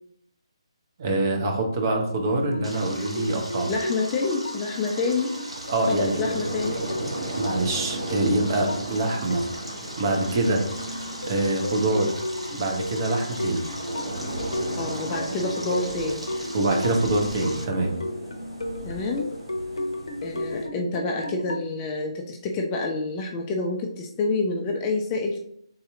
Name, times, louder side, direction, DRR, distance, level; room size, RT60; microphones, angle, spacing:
voice 1, 1.0-3.7 5.7-6.3 7.4-9.4 10.0-10.6 11.3-12.1 12.6-13.6 16.5-18.0, right 2 dB, 35° right, 2 dB, 0.7 m, -25 dB
sound 1, 2.2-21.6, left 1 dB, 65° left, 0.6 m, -35 dB
Stream, 2.6-17.6, equal, 85° right, 1.0 m, -39 dB
voice 2, 3.7-5.3 5.9-6.8 14.8-16.3 18.8-19.3 20.2-25.4, left 3 dB, 15° left, 0 dB, 0.3 m, -27 dB
sound 2, 5.5-20.7, right 1 dB, 60° right, 1.1 m, -36 dB
3.8 x 2.7 x 3.4 m, 0.70 s
figure-of-eight pair, 145°, 3 cm